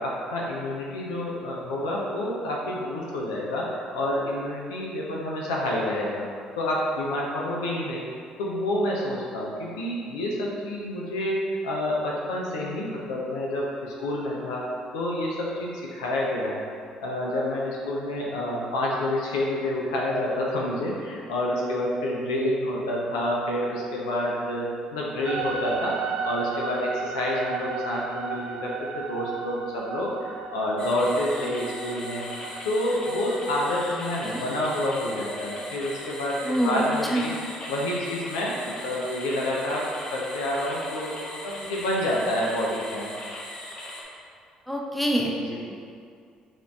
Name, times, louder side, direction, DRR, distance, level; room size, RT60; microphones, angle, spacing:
voice 1, 0.0-6.2 6.6-8.1 8.4-14.6 14.9-16.7 17.0-32.3 32.6-37.3 37.7-41.1 41.4-43.2 45.4-45.6, left 1 dB, 85° left, -3 dB, 0.5 m, -28 dB
sound 1, 25.2-37.5, right 5 dB, 65° right, 0.3 m, -36 dB
sound 2, 30.8-44.0, left 1 dB, 40° left, 0.8 m, -39 dB
voice 2, 36.4-36.8 37.1-37.3 44.7-45.3 45.7-45.8, right 1 dB, ahead, -1 dB, 0.6 m, -25 dB
3.6 x 2.6 x 3.5 m, 2.3 s
hypercardioid pair, 55°, 3 cm